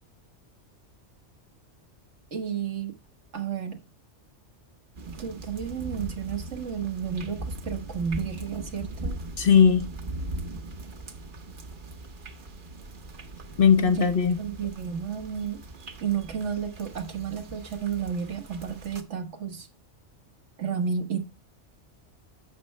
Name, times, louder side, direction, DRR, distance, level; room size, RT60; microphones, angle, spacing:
voice 1, 2.3-2.9 3.3-3.8 5.2-9.2 13.8-14.0 14.4-15.6 16.0-19.7 20.6-21.2, right 7 dB, 75° right, 1.7 m, -32 dB
sound 1, 5.0-19.0, right 2 dB, 45° right, 1.1 m, -40 dB
voice 2, 9.4-9.9 13.6-14.4, left 7 dB, 50° left, 0.9 m, -18 dB
11.0 x 7.5 x 3.2 m
omnidirectional pair, 1.2 m